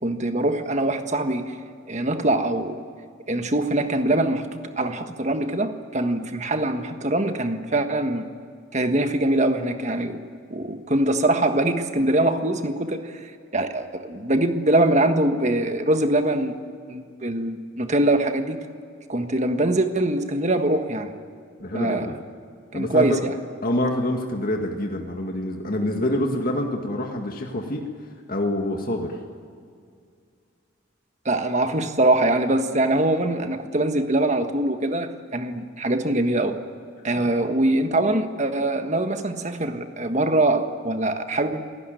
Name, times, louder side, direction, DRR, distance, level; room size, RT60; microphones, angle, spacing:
voice 1, 0.0-1.6 1.9-2.8 3.3-8.3 8.7-10.2 10.5-16.5 16.9-18.6 19.1-21.1 21.7-22.1 22.7-23.3 31.2-36.6 37.0-41.6, right 1 dB, 35° right, 7 dB, 1.5 m, -23 dB
voice 2, 21.6-22.2 22.7-23.2 23.6-27.8 28.3-29.2 37.2-37.3, left 1 dB, 45° left, 2 dB, 2.0 m, -26 dB
28.0 x 18.0 x 9.2 m, 2.3 s
head